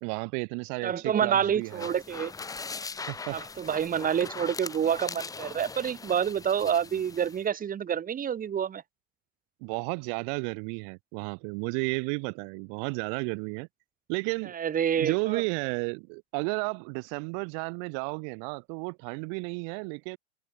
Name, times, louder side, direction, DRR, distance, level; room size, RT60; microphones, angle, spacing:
voice 1, 0.0-1.9 3.1-3.4 9.6-13.7 14.1-14.5 15.0-20.2, right 40 dB or more, 45° right, 1.4 m, -33 dB
voice 2, 0.8-2.3 3.3-8.8 14.5-15.4, right 8 dB, 20° right, 1.5 m, -28 dB
sound 1, 1.6-7.4, left 4 dB, 10° left, 0.7 m, -40 dB
hypercardioid pair, 100°, 41 cm